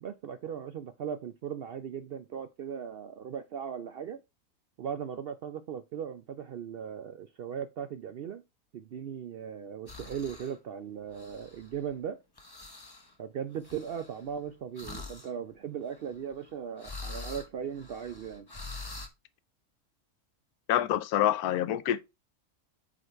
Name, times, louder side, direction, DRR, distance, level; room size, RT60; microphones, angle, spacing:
voice 1, 0.0-4.2 4.8-8.4 8.7-12.2 13.2-18.5, right 8 dB, 80° right, 0.5 m, -38 dB
sound 1, 9.9-10.6 11.1-11.9 12.4-13.1 13.6-14.3 14.8-15.3 15.8-16.5 16.8-19.1, left 3 dB, 20° left, 0.9 m, -44 dB
voice 2, 20.7-22.0, left 11 dB, 80° left, 1.1 m, -26 dB
8.0 x 4.0 x 4.4 m
omnidirectional pair, 1.6 m